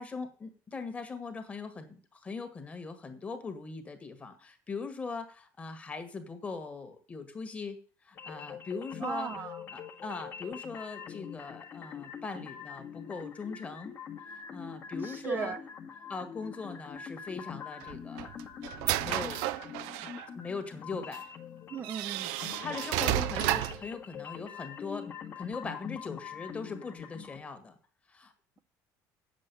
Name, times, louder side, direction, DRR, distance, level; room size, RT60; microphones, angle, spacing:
voice 1, 0.0-7.8 8.0-14.0 14.3-15.6 16.1-18.3 18.9-19.4 20.0-21.2 22.6-27.8 28.1-28.3, left 4 dB, 20° left, 8 dB, 1.6 m, -40 dB
sound 1, 8.2-27.4, left 7 dB, 35° left, 1.4 m, -44 dB
voice 2, 9.0-9.6 15.0-15.6 21.7-22.5, right 5 dB, 30° right, 8 dB, 0.6 m, -36 dB
sound 2, 17.8-20.3 21.1-21.2 21.8-23.9, right 15 dB, 85° right, 0.6 m, -32 dB
8.4 x 7.6 x 6.9 m, 0.39 s
cardioid pair, 145°, 7 cm